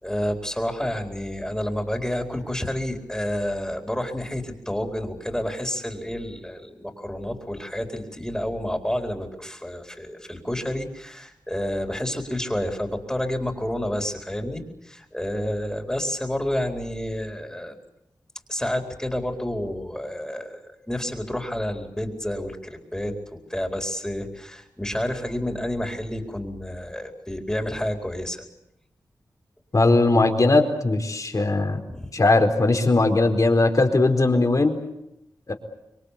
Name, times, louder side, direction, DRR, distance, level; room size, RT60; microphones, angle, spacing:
voice 1, 0.0-17.8 18.5-28.4 31.9-32.1, left 1 dB, 10° left, 3 dB, 4.3 m, -29 dB
voice 2, 29.7-31.8 32.1-34.8 35.5-35.6, left 2 dB, 50° left, 5 dB, 4.3 m, -19 dB
26.0 x 23.0 x 8.4 m, 0.86 s
cardioid pair, 55°, 7 cm